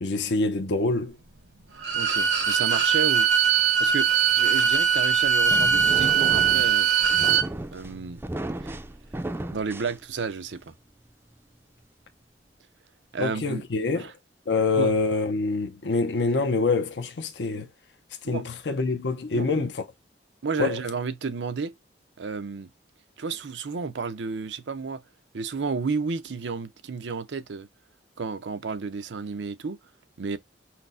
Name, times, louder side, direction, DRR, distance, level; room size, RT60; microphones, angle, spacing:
voice 1, 0.0-1.2 13.2-14.1 14.5-17.7 18.3-19.8 20.6-20.8, left 3 dB, 75° left, 0.6 m, -25 dB
Bowed string instrument, 1.8-7.5, right 7 dB, 75° right, 1.0 m, -21 dB
voice 2, 1.9-3.3 3.8-6.9 7.7-8.2 8.6-8.8 9.5-10.7 13.1-13.6 14.0-14.1 14.8-15.0 18.2-18.6 19.3-19.7 20.4-21.7 22.2-22.7 23.2-25.0 25.3-27.7 28.2-29.8 30.2-30.4, right 4 dB, 90° right, 0.6 m, -32 dB
sound 1, 4.9-10.5, right 1 dB, 15° right, 0.4 m, -35 dB
5.8 x 2.1 x 2.6 m
head